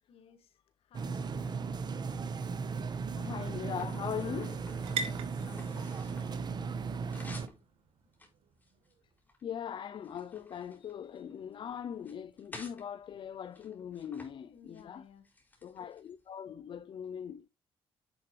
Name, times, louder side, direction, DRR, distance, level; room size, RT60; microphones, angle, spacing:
voice 1, 0.1-1.8 4.0-7.2 14.5-15.2, left 8 dB, 75° left, 2.2 m, -58 dB
sound 1, 0.9-7.5, right 5 dB, 45° right, 1.3 m, -36 dB
sound 2, 1.4-2.3 2.9-6.4 6.7-7.6 8.1-9.4 9.8-11.5 11.9-12.8 13.5-14.3 14.6-14.8 15.2-16.2, left 2 dB, 15° left, 4.5 m, -54 dB
sound 3, 1.8-9.2, right 5 dB, 75° right, 2.5 m, -46 dB
voice 2, 3.2-4.6 9.4-15.1 15.6-17.5, left 8 dB, 55° left, 0.6 m, -40 dB
9.8 x 7.6 x 3.3 m
cardioid pair, 100°, 10 cm